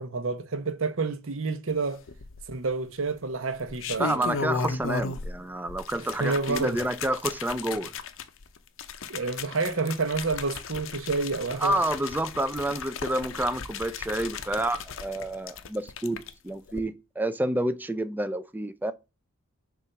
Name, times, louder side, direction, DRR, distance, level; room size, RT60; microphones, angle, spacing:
voice 1, 0.0-2.0 2.5-4.3 6.2-6.8 9.1-11.8, right 4 dB, 70° right, 0.8 m, -29 dB
sound 1, 2.1-2.7 3.5-5.4 5.7-16.3 16.7-16.8, left 5 dB, 65° left, 0.6 m, -36 dB
voice 2, 4.0-7.9 11.6-18.9, right 1 dB, 10° right, 0.3 m, -29 dB
6.9 x 2.5 x 5.6 m
head